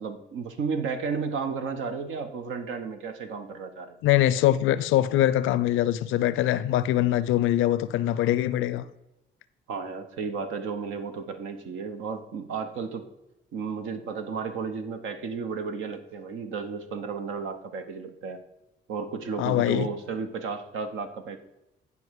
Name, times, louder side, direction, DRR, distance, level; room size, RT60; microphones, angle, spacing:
voice 1, 0.0-4.0 9.7-13.1 13.5-18.4 18.9-21.4, right 5 dB, 80° right, 1.0 m, -33 dB
voice 2, 4.0-8.8 19.4-19.9, left 13 dB, 85° left, 0.5 m, -23 dB
9.6 x 5.5 x 4.7 m
cardioid pair, 90°, 20 cm